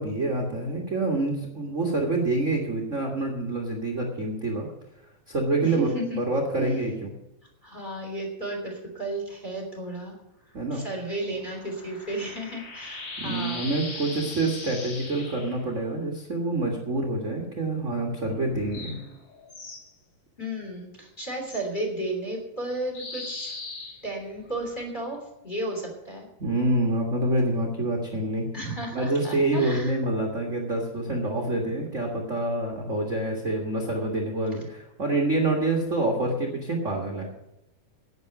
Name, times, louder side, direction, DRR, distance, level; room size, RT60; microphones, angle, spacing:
voice 1, 0.0-4.7 5.3-7.1 10.5-10.8 13.2-18.9 26.4-28.5 28.9-37.3, right 2 dB, 40° right, 0 dB, 1.1 m, -27 dB
voice 2, 5.6-6.2 6.5-6.8 7.6-10.1 10.7-13.7 20.4-23.5 24.0-25.2 25.4-26.3 28.5-30.0, right 1 dB, 15° left, 0 dB, 2.9 m, -33 dB
sound 1, 11.1-15.6 18.4-19.9 21.5-21.6 22.9-24.9, left 3 dB, 45° left, 2.8 m, -39 dB
11.0 x 9.3 x 8.0 m, 0.87 s
omnidirectional pair, 4.1 m